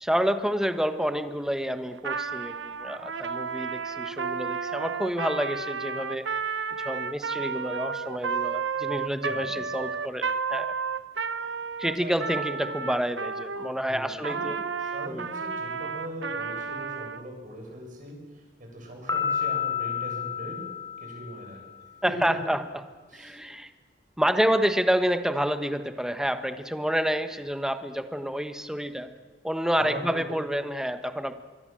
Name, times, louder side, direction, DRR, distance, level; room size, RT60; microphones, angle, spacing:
voice 1, 0.0-6.2 6.8-10.7 11.8-14.6 15.1-15.3 22.0-22.6 23.1-23.7 24.2-29.1 29.4-31.3, equal, 5° right, 9 dB, 1.3 m, -28 dB
Trumpet, 2.0-13.7 14.2-17.2, right 5 dB, 90° right, 1.0 m, -32 dB
voice 2, 8.9-9.7 11.9-12.4 13.9-14.5 14.8-20.7 21.0-21.6 22.1-22.4 23.1-23.4 29.8-30.4, equal, 45° right, 1 dB, 7.8 m, -40 dB
Piano, 19.1-21.7, left 7 dB, 20° left, 3.5 m, -30 dB
25.0 x 23.5 x 7.6 m, 1.3 s
head